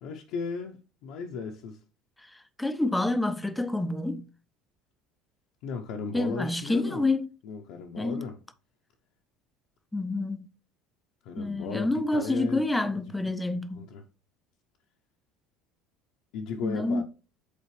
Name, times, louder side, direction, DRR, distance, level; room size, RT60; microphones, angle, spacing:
voice 1, 0.0-1.8 5.6-7.1 7.4-8.4 11.2-13.0 13.7-14.0 16.3-17.0, left 5 dB, 60° left, 0.7 m, -36 dB
voice 2, 2.6-4.3 6.1-7.3 8.0-8.2 9.9-10.5 11.4-13.8 16.6-17.0, left 2 dB, 5° left, 0.5 m, -28 dB
8.4 x 4.2 x 3.2 m
cardioid pair, 160°, 0 cm